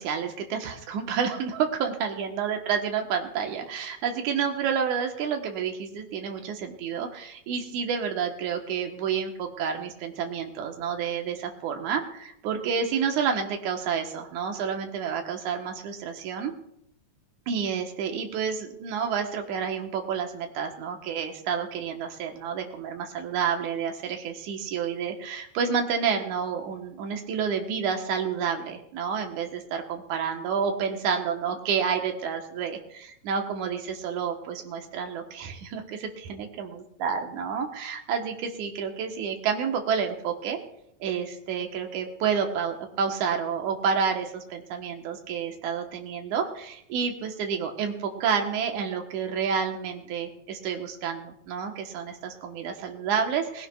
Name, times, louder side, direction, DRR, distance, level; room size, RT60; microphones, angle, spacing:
voice 1, 0.0-16.5 17.5-40.6 41.0-53.7, right 6 dB, 85° right, 3 dB, 2.6 m, -29 dB
20.5 x 16.5 x 2.3 m, 0.75 s
omnidirectional pair, 3.4 m